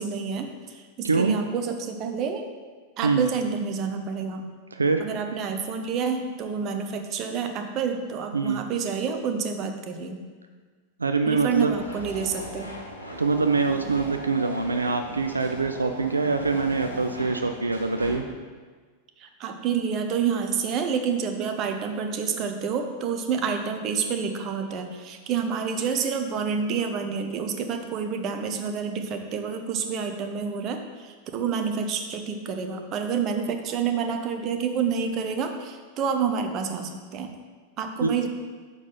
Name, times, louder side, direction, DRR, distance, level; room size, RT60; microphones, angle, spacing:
voice 1, 0.0-2.4 3.0-4.5 5.0-10.2 11.3-12.7 19.2-37.3 37.8-38.3, right 6 dB, 35° right, 6 dB, 0.7 m, -28 dB
voice 2, 1.0-1.4 3.0-3.3 4.7-5.1 8.3-8.6 11.0-11.7 13.2-18.2 38.0-38.2, right 4 dB, 80° right, 6 dB, 0.3 m, -24 dB
sound 1, 11.4-18.2, equal, 85° left, 1.0 m, -38 dB
6.4 x 5.3 x 5.3 m, 1.5 s
figure-of-eight pair, 90°, 0 cm